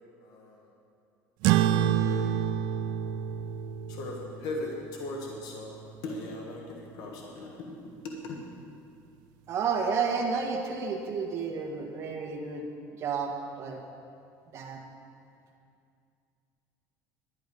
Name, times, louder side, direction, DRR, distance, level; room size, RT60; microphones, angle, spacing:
voice 1, 0.2-0.7 1.7-2.4 3.9-8.4, left 2 dB, 65° left, 0 dB, 1.5 m, -39 dB
sound 1, 1.4-6.3, right 10 dB, 70° right, 0.4 m, -29 dB
voice 2, 9.5-12.7 13.0-13.8 14.5-14.8, right 5 dB, 40° right, 0 dB, 1.7 m, -31 dB
11.5 x 10.0 x 5.3 m, 2.4 s
cardioid pair, 145°, 7 cm